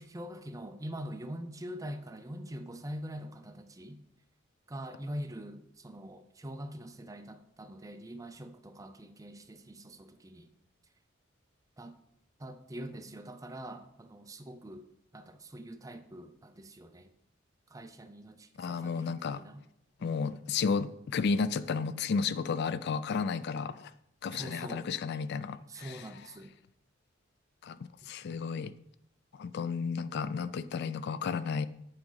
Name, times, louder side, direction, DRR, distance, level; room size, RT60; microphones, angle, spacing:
voice 1, 0.0-4.0 4.7-10.5 11.8-11.9 12.4-14.8 15.1-17.1 17.7-19.6 20.0-20.1 24.3-24.9 25.7-26.5, equal, 15° right, 0.5 m, -44 dB
voice 2, 18.6-19.4 20.0-23.9 24.2-26.0 27.6-27.8 28.0-28.7 29.3-31.7, left 5 dB, 55° left, 0.3 m, -32 dB
8.7 x 5.1 x 3.9 m
head